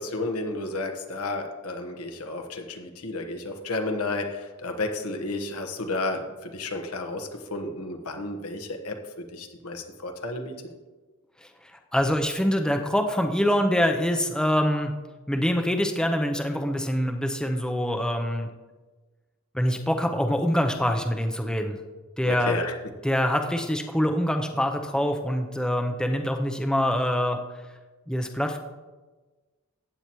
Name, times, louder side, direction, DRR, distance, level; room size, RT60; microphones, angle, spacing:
voice 1, 0.0-10.6 22.2-22.7, left 2 dB, 85° left, 3 dB, 1.3 m, -32 dB
voice 2, 11.9-14.9 15.3-18.5 19.5-21.8 22.2-22.6 23.0-27.4 28.1-28.6, equal, 5° left, 4 dB, 0.6 m, -25 dB
14.5 x 8.7 x 3.1 m, 1.3 s
head